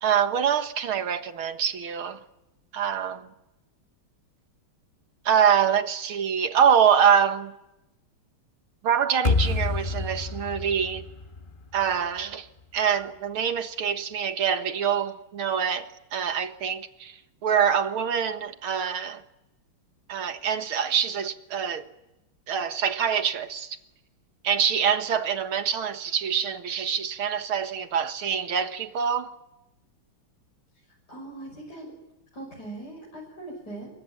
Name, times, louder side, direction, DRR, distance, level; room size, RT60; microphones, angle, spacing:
voice 1, 0.0-2.2 2.7-3.3 5.3-7.5 8.8-11.0 11.7-12.5 12.7-17.2 17.4-19.2 20.1-21.9 22.5-23.8 24.4-29.3, right 8 dB, 70° right, 2.3 m, -25 dB
sound 1, 9.2-12.3, left 3 dB, 30° left, 1.1 m, -28 dB
voice 2, 31.1-31.9 32.3-33.9, right 2 dB, 45° left, 6.5 m, -40 dB
28.5 x 22.5 x 8.6 m
omnidirectional pair, 2.4 m